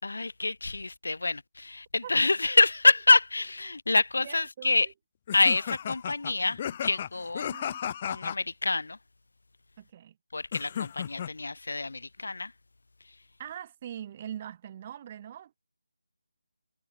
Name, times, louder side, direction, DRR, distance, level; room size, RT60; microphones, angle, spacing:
voice 1, 0.0-4.9 5.3-7.5 8.1-9.0 10.3-12.5, left 3 dB, 70° left, 6.5 m, -26 dB
voice 2, 4.2-4.8 7.4-7.8 9.8-10.1 13.4-15.6, right 10 dB, 20° right, 2.3 m, -42 dB
sound 1, 5.3-8.4 10.5-11.3, left 9 dB, 20° left, 0.6 m, -34 dB
figure-of-eight pair, 175°, 0 cm